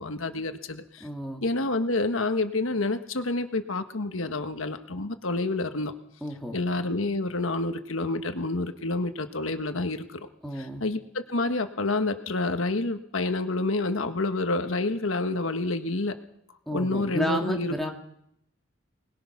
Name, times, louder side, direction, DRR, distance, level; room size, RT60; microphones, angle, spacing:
voice 1, 0.0-1.1 1.4-5.9 6.5-10.3 10.6-16.2 16.7-17.9, left 2 dB, 90° left, 8 dB, 1.4 m, -28 dB
voice 2, 1.0-1.4 6.2-6.6 10.4-10.8 16.7-17.9, equal, ahead, 1 dB, 2.2 m, -31 dB
25.0 x 20.0 x 6.0 m, 0.76 s
head